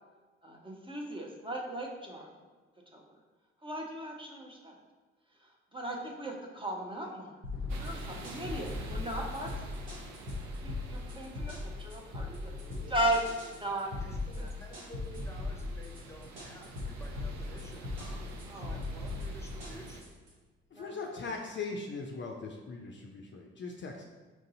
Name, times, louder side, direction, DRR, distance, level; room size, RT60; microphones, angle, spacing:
voice 1, 0.4-2.3 2.9-3.0 3.6-4.7 5.7-7.4 7.8-9.5 10.6-12.5 12.9-13.2 13.5-13.9 14.4-14.5 18.5-18.8 20.8-21.3, right 1 dB, 15° right, -1 dB, 0.8 m, -36 dB
sound 1, 7.4-20.3, left 2 dB, 80° right, 1.3 m, -38 dB
sound 2, 7.7-20.0, right 3 dB, 65° right, 0.7 m, -49 dB
voice 2, 12.4-13.0 14.0-20.2, left 1 dB, 10° left, 1 dB, 1.0 m, -52 dB
voice 3, 20.8-24.1, left 4 dB, 40° left, 1 dB, 0.5 m, -40 dB
4.7 x 2.6 x 3.9 m, 1.3 s
hypercardioid pair, 45°, 31 cm